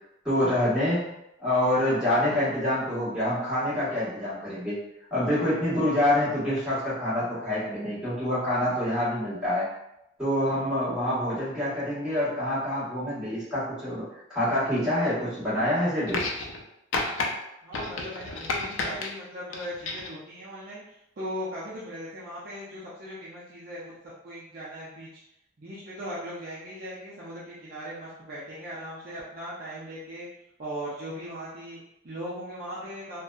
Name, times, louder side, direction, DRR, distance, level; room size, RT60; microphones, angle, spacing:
voice 1, 0.2-1.1 1.4-4.8 5.1-9.7 10.2-16.3, left 1 dB, 5° right, -13 dB, 1.3 m, -26 dB
sound 1, 16.1-16.6 16.9-17.3 17.7-19.1 19.5-20.2 21.2-21.3, left 3 dB, 70° left, 0.4 m, -31 dB
voice 2, 17.6-25.2 25.6-30.3 30.6-33.2, equal, 45° right, -8 dB, 0.5 m, -39 dB
2.7 x 2.2 x 2.3 m, 0.83 s
head